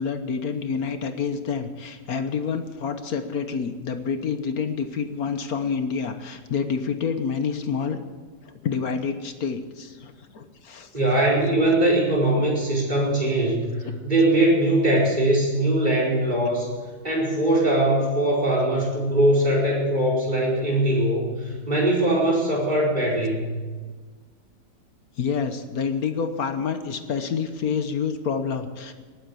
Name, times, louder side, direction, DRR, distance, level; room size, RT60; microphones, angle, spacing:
voice 1, 0.0-8.0 8.4-10.9 13.8-13.9 25.2-28.9, left 6 dB, 60° left, 8 dB, 1.4 m, -28 dB
voice 2, 10.9-16.7 17.0-23.5, right 1 dB, 25° right, -3 dB, 5.0 m, -21 dB
19.5 x 9.2 x 6.9 m, 1.5 s
omnidirectional pair, 1.9 m